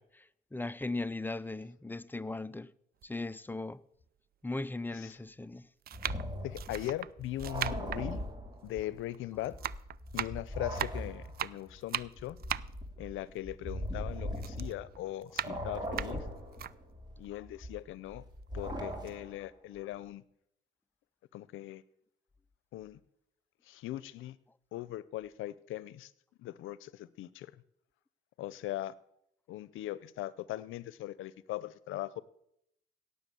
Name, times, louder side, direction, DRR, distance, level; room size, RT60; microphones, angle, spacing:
voice 1, 0.0-2.7 3.0-3.8 4.4-5.7 30.5-30.6, left 2 dB, 10° left, 0.5 m, -38 dB
sound 1, 3.0-3.1 4.0-4.1 5.1-5.3 5.8-9.2 9.4-14.0 14.4-16.7 17.2-17.3 17.6-18.6 18.9-19.1, right 10 dB, 50° right, 0.4 m, -39 dB
sound 2, 5.9-9.0 9.3-15.1 15.4-19.5, equal, 20° right, 3.0 m, -40 dB
voice 2, 6.4-8.2 8.6-9.6 10.1-12.4 13.0-16.2 17.2-18.2 18.5-20.2 21.3-21.8 22.7-23.0 23.7-24.4 24.7-26.1 26.4-27.5 28.4-28.9 29.5-32.2, left 14 dB, 85° left, 0.6 m, -40 dB
17.0 x 6.8 x 6.9 m
cardioid pair, 90°, 20 cm